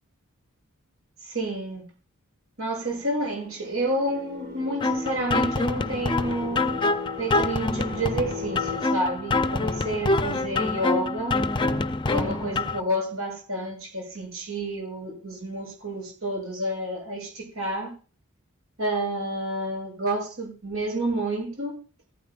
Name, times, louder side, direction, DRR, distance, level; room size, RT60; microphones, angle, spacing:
voice 1, 1.2-1.8 2.6-6.7 7.2-11.4 12.1-17.9 18.8-21.7, right 1 dB, 80° right, 7.9 m, -29 dB
sound 1, 2.8-8.8, left 6 dB, 40° right, 2.1 m, -38 dB
sound 2, 4.8-12.8, left 3 dB, 20° left, 0.5 m, -26 dB
15.0 x 13.5 x 2.5 m
head